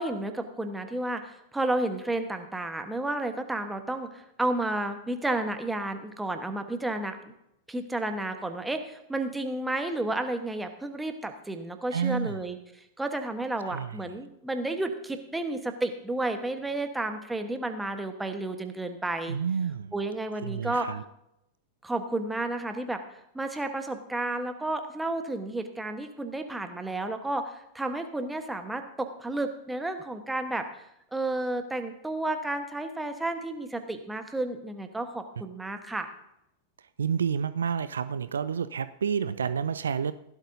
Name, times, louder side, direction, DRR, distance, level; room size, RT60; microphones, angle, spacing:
voice 1, 0.0-7.2 7.7-19.4 19.9-20.9 21.8-23.0 23.3-30.8 31.1-36.1, right 2 dB, 5° right, 7 dB, 1.2 m, -32 dB
voice 2, 11.9-12.4 13.7-14.2 19.3-19.9 20.4-21.0 37.0-40.1, right 7 dB, 70° right, 14 dB, 0.4 m, -29 dB
16.5 x 11.5 x 2.7 m, 0.81 s
figure-of-eight pair, 90°, 0 cm